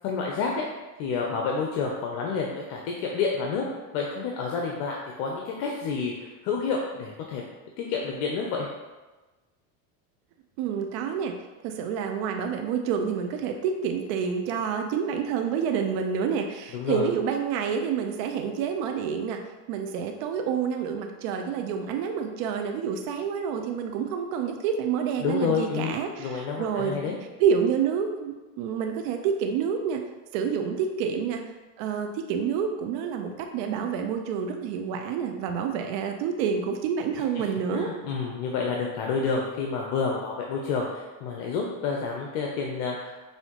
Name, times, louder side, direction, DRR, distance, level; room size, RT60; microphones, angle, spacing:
voice 1, 0.0-0.6 1.0-3.7 3.9-7.4 7.8-8.7 16.7-17.1 25.2-27.2 37.4-43.2, left 5 dB, 60° left, 0 dB, 0.7 m, -29 dB
voice 2, 10.6-11.4 11.6-19.4 19.7-27.0 27.4-30.0 30.3-31.4 31.8-37.9, right 7 dB, 60° right, 4 dB, 0.6 m, -28 dB
5.5 x 2.7 x 2.9 m, 1.2 s
supercardioid pair, 115°, 44 cm